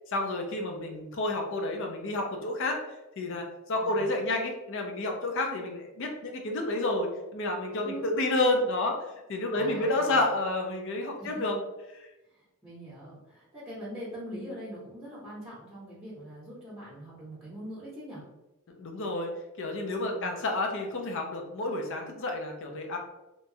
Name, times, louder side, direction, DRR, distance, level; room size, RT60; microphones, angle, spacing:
voice 1, 0.1-2.8 3.2-9.0 9.3-11.5 18.8-19.3 19.6-23.0, left 2 dB, 60° left, 2 dB, 0.5 m, -30 dB
voice 2, 3.8-4.1 7.8-8.1 9.5-10.2 11.2-11.4 12.3-18.2 20.0-20.4, equal, 10° right, -10 dB, 0.7 m, -43 dB
2.9 x 2.2 x 2.6 m, 1.0 s
head